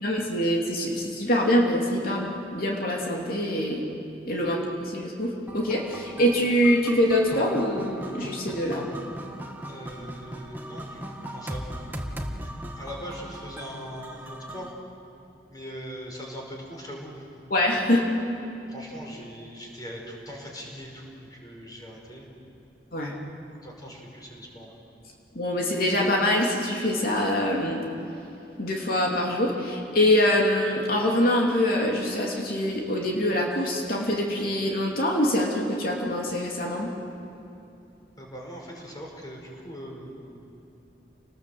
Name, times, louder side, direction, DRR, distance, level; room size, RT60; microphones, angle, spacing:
voice 1, 0.0-3.8 4.3-8.9 17.5-18.1 22.9-23.1 25.3-27.8 28.6-36.9, left 1 dB, 55° left, -2 dB, 3.0 m, -24 dB
sound 1, 5.5-14.7, equal, 10° right, 1.6 m, -38 dB
voice 2, 9.7-11.7 12.8-14.7 15.5-17.4 18.7-22.3 23.5-24.8 38.2-40.4, equal, 20° left, -1 dB, 5.2 m, -41 dB
29.0 x 19.5 x 7.8 m, 2.7 s
head